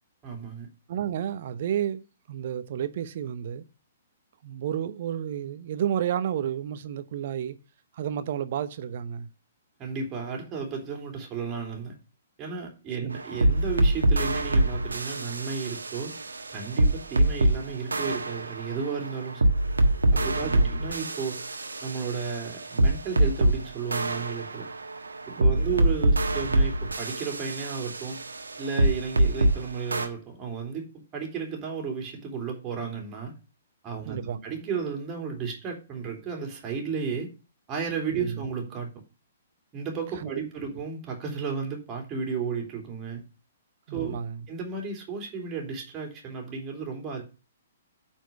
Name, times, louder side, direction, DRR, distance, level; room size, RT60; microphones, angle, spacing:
voice 1, 0.2-0.7 9.8-12.0 12.4-16.1 16.5-19.5 20.1-21.4 21.8-24.7 25.3-28.2 28.6-33.3 33.8-37.3 37.7-38.9 39.7-43.2 43.9-44.2 44.5-47.2, right 5 dB, 20° right, 3.0 m, -33 dB
voice 2, 0.9-3.6 4.4-7.6 7.9-9.3 13.0-13.2 20.4-20.8 25.4-25.7 34.0-34.4 38.1-38.4 40.2-40.4 43.9-44.4, right 9 dB, 45° right, 0.9 m, -31 dB
sound 1, 13.1-17.6 17.9-23.6 23.9-29.6 29.9-30.1, right 1 dB, 70° right, 1.4 m, -25 dB
9.1 x 4.6 x 7.1 m
figure-of-eight pair, 120°, 0 cm